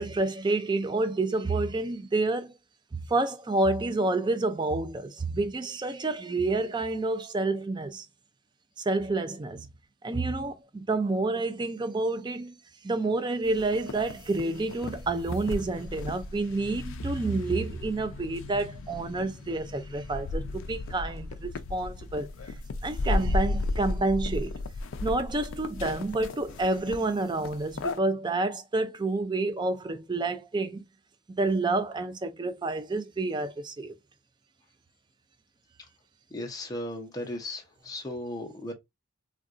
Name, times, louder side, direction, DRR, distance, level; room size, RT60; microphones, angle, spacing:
voice 1, 0.0-2.5 2.9-8.1 8.8-9.7 10.0-12.5 12.8-22.3 22.8-24.6 25.0-30.9 31.3-33.9, right 2 dB, 20° right, 0.3 m, -29 dB
sound 1, 13.4-28.0, left 2 dB, 65° left, 0.4 m, -35 dB
voice 2, 36.3-38.7, left 1 dB, 15° left, 0.6 m, -36 dB
3.7 x 2.2 x 2.4 m
head